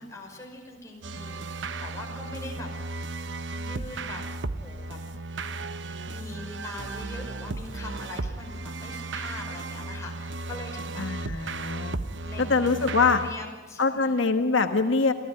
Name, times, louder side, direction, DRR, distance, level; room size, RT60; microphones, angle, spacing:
voice 1, 0.0-2.7 3.5-5.0 5.7-11.4 12.0-12.9 13.1-14.2, left 2 dB, 15° left, 0 dB, 5.4 m, -42 dB
sound 1, 1.0-13.4, right 2 dB, 65° right, 0.9 m, -35 dB
voice 2, 11.0-12.0 12.4-13.2 13.8-15.1, left 4 dB, 80° left, 6 dB, 1.3 m, -23 dB
28.0 x 15.0 x 9.7 m, 1.3 s
head